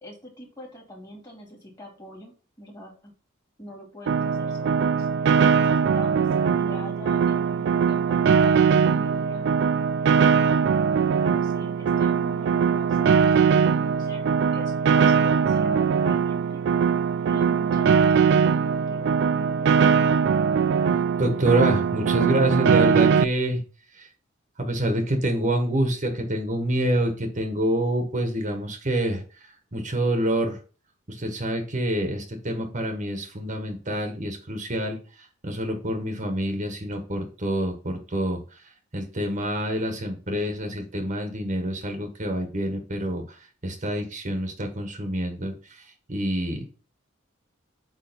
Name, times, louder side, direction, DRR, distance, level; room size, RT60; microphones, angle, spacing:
voice 1, 0.0-3.1 3.6-5.1 5.6-6.3 6.6-9.4 10.1-10.7 11.2-16.6 17.3-20.1, left 1 dB, 20° left, 0 dB, 2.8 m, -43 dB
Piano, 4.1-23.2, right 6 dB, 60° right, 0.3 m, -21 dB
voice 2, 21.2-23.6 23.9-24.1 24.6-30.6 31.1-46.6, right 1 dB, 40° right, 5 dB, 1.5 m, -27 dB
8.9 x 3.6 x 5.2 m, 0.36 s
head